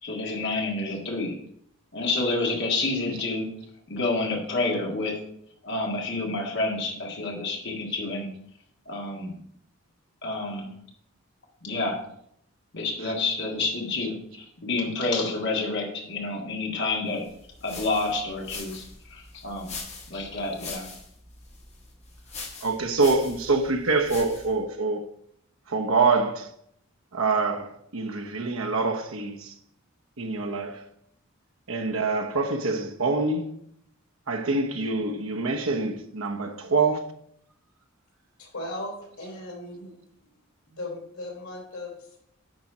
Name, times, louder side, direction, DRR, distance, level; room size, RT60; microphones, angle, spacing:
voice 1, 0.0-1.3 1.9-3.5 3.9-5.2 5.6-8.3 8.8-9.4 10.2-10.7 11.6-12.0 12.7-17.2 17.6-19.7 20.1-20.9, left 3 dB, 55° left, 1.7 m, -29 dB
sound 1, 17.2-24.6, left 4 dB, 30° left, 1.5 m, -42 dB
voice 2, 22.6-25.0 25.7-26.5 27.1-29.5 30.2-30.8 31.7-33.5 34.3-37.0, right 3 dB, 75° right, 1.0 m, -25 dB
voice 3, 38.4-39.9 40.6-42.2, left 1 dB, 90° left, 3.6 m, -37 dB
10.5 x 4.2 x 4.9 m
head